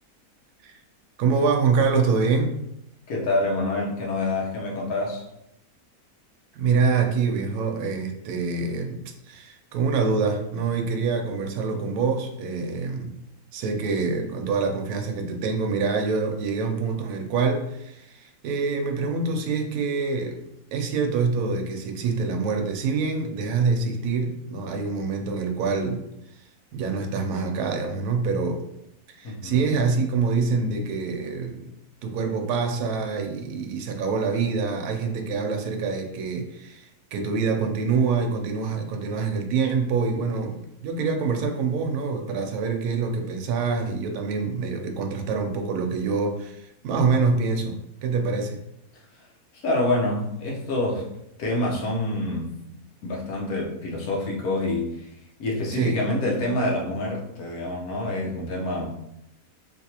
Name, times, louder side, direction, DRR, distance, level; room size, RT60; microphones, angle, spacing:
voice 1, 1.2-2.6 6.5-13.2 13.5-20.4 20.7-26.0 26.3-26.4 26.7-28.6 29.1-31.7 32.0-48.6 55.7-56.0, right 4 dB, 80° right, 3 dB, 1.1 m, -25 dB
voice 2, 3.1-5.2 29.2-29.7 49.5-51.0 51.4-52.5 53.0-55.1 55.4-58.9, left 1 dB, 70° left, -3 dB, 1.3 m, -27 dB
3.3 x 2.8 x 2.8 m, 0.80 s
omnidirectional pair, 1.6 m